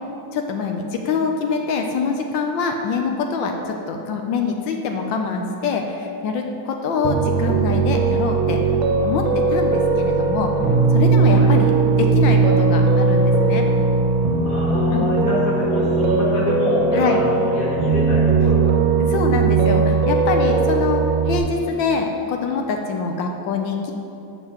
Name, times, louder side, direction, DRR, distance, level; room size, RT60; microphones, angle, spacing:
voice 1, 0.3-8.6 9.0-10.5 10.9-13.6 14.9-15.1 16.9-17.2 19.0-23.9, left 4 dB, 80° left, 3 dB, 1.3 m, -24 dB
Piano, 7.0-21.4, right 4 dB, 80° right, 1.4 m, -18 dB
voice 2, 11.2-11.5 14.4-18.8, left 1 dB, 45° left, -5 dB, 1.7 m, -26 dB
11.5 x 6.8 x 2.9 m, 2.8 s
omnidirectional pair, 2.1 m